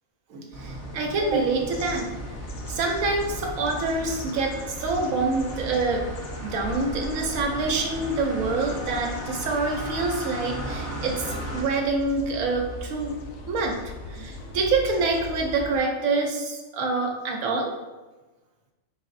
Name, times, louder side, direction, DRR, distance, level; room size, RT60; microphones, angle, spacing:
voice 1, 0.3-2.1 2.7-6.0 6.4-13.2 13.5-13.8 14.1-17.7, right 3 dB, 80° right, 2 dB, 1.0 m, -26 dB
sound 1, 0.5-11.6, equal, 20° left, 0.5 m, -36 dB
sound 2, 1.7-15.8, left 2 dB, 65° left, 0.8 m, -39 dB
4.0 x 3.9 x 2.5 m, 1.2 s
omnidirectional pair, 1.4 m